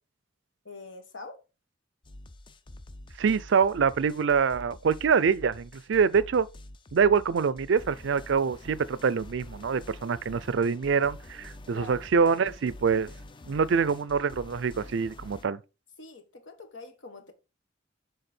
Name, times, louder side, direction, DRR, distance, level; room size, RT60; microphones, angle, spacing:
voice 1, 0.6-1.4 11.7-12.0 16.0-17.3, left 3 dB, 70° left, 1.2 m, -45 dB
sound 1, 2.0-15.4, left 1 dB, 25° left, 0.4 m, -47 dB
voice 2, 3.2-6.5 6.9-13.1 13.4-15.6, right 6 dB, 70° right, 0.4 m, -25 dB
6.7 x 4.0 x 4.2 m
head